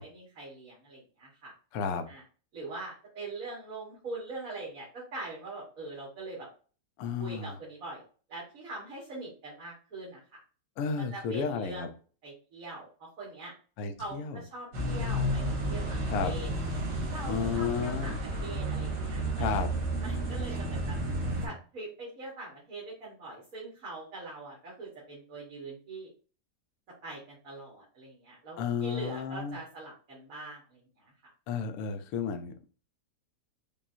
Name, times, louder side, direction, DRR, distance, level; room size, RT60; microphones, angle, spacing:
voice 1, 0.0-1.5 2.1-2.2 2.5-6.5 7.2-8.0 8.3-10.4 11.0-11.9 12.2-13.5 14.0-16.5 17.1-19.6 20.0-21.0 21.4-26.1 27.0-31.1, right 2 dB, 55° right, -6 dB, 1.7 m, -43 dB
voice 2, 1.7-2.0 7.0-7.5 10.8-11.9 13.8-14.4 16.1-16.3 17.3-18.1 19.4-19.7 28.6-29.6 31.5-32.7, left 6 dB, 70° left, 6 dB, 1.0 m, -32 dB
sound 1, 14.7-21.5, right 1 dB, 70° right, 1.9 m, -32 dB
5.4 x 2.4 x 2.5 m, 0.38 s
omnidirectional pair, 1.8 m